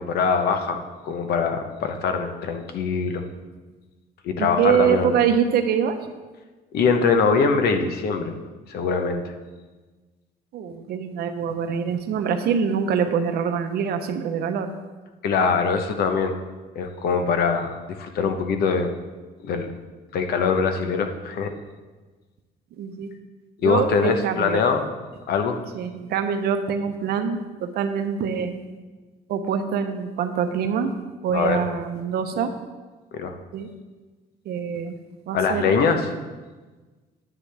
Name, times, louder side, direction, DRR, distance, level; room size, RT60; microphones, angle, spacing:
voice 1, 0.0-3.2 4.2-5.2 6.7-8.4 8.7-9.3 15.2-16.3 16.7-18.9 19.4-19.7 20.1-21.5 23.6-24.8 25.3-25.6 31.3-31.6 33.1-33.3 35.3-36.1, left 5 dB, 70° left, 6 dB, 1.0 m, -23 dB
voice 2, 4.4-6.0 10.5-14.7 22.8-23.1 23.6-24.6 25.7-28.5 29.3-30.9 31.2-32.5 33.5-33.7 34.4-35.0 35.3-35.7, right 7 dB, 70° right, 7 dB, 0.9 m, -24 dB
9.6 x 9.6 x 3.4 m, 1.3 s
cardioid pair, 110°, 17 cm